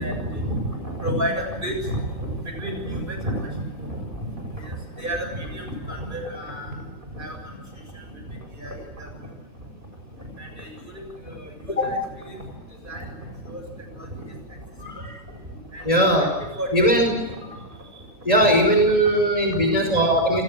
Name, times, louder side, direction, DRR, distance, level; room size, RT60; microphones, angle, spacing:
voice 1, 0.0-4.0 4.4-6.7 7.2-7.4 8.6-9.1 10.4-10.7 10.9-11.0 11.8-12.0 12.2-12.3 12.8-13.1 13.4-13.6 14.2-14.3 15.7-15.8 16.2-16.3 16.5-17.2 18.4-18.7 20.1-20.2, right 1 dB, 25° right, 4 dB, 7.3 m, -30 dB
voice 2, 14.8-15.2 15.8-16.3 16.7-17.1 17.4-17.6 18.3-20.4, right 1 dB, 20° left, 4 dB, 5.4 m, -19 dB
29.5 x 21.5 x 7.8 m, 1.1 s
omnidirectional pair, 2.0 m